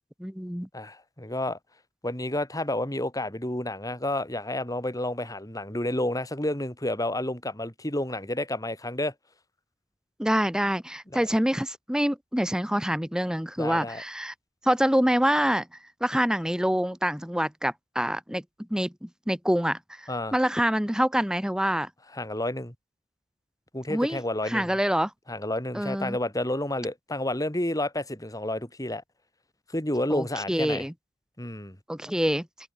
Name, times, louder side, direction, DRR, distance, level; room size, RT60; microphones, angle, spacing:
voice 1, 0.2-0.7 10.2-14.3 14.6-15.7 16.0-18.4 18.7-21.9 23.9-24.2 24.5-25.1 25.7-26.2 30.1-30.9 31.9-32.5, equal, 5° right, 1.6 m, -26 dB
voice 2, 0.7-1.6 2.0-9.1 11.1-11.2 13.6-14.0 20.1-20.4 22.1-22.7 23.7-24.7 25.3-29.0 29.7-30.9 31.4-31.8, left 1 dB, 20° left, 4.0 m, -30 dB
head